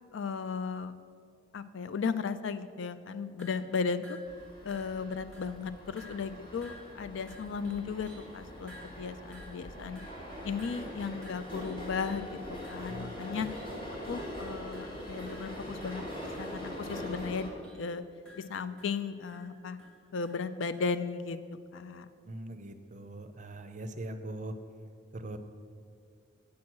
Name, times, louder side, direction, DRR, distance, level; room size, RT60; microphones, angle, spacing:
voice 1, 0.1-0.9 1.5-4.2 4.6-10.0 10.4-13.5 14.1-16.0 16.4-18.0 18.4-19.8 20.1-21.4 21.7-22.1, left 5 dB, 75° left, 12 dB, 0.4 m, -35 dB
sound 1, 3.4-3.7 4.0-4.4 4.7-5.1 5.3-5.6 6.0-6.4 6.6-8.3 8.7-12.3 12.6-13.8 14.1-14.5 14.7-15.0 15.3-15.6 15.8-17.9 18.2-21.0, equal, 5° left, 1.1 m, -55 dB
sound 2, 4.3-17.5, equal, 25° left, 1.5 m, -42 dB
voice 2, 12.9-13.4 22.3-24.5 25.1-25.4, right 1 dB, 40° right, 8 dB, 0.5 m, -41 dB
8.4 x 6.2 x 6.0 m, 2.3 s
head